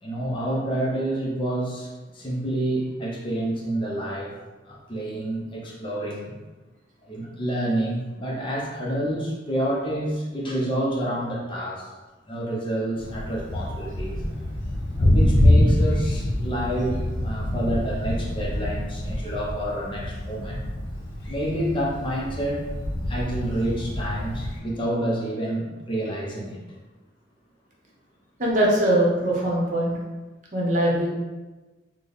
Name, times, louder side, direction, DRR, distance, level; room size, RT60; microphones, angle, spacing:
voice 1, 0.0-4.3 4.6-6.3 7.1-11.9 12.2-14.2 15.0-20.6 21.3-22.6 23.1-26.6, right 1 dB, 25° left, -3 dB, 0.6 m, -28 dB
Thunder, 12.9-24.6, left 1 dB, 65° left, 0.9 m, -25 dB
voice 2, 28.4-30.0 30.5-31.1, right 1 dB, 40° right, -3 dB, 0.8 m, -21 dB
3.9 x 2.1 x 3.4 m, 1.2 s
head